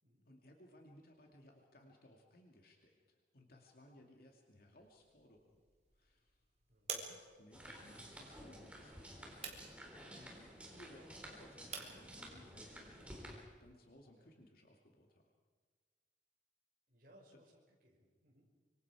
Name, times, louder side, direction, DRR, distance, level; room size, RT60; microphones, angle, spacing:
voice 1, 0.3-5.6 5.9-6.4 6.9-9.6 10.0-15.2, left 1 dB, 55° left, 1 dB, 2.4 m, -62 dB
sound 1, 4.8-13.9, right 5 dB, 40° right, 3.5 m, -53 dB
sound 2, 7.5-13.4, equal, 5° right, 3.9 m, -53 dB
voice 2, 16.9-18.4, equal, 55° right, -2 dB, 5.2 m, -67 dB
25.5 x 25.0 x 4.9 m, 1.5 s
head